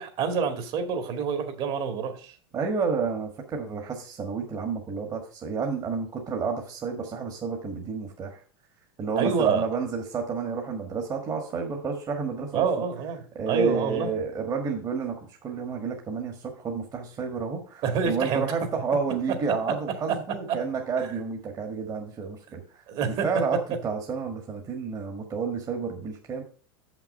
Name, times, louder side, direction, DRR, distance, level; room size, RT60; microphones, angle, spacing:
voice 1, 0.0-2.3 9.2-9.7 12.5-14.1 17.8-18.4 22.9-23.3, right 6 dB, 45° right, 6 dB, 2.0 m, -27 dB
voice 2, 2.5-8.4 9.0-12.7 13.3-26.4, right 5 dB, 30° right, 1 dB, 1.6 m, -30 dB
7.2 x 6.0 x 5.4 m, 0.40 s
hypercardioid pair, 110°, 13 cm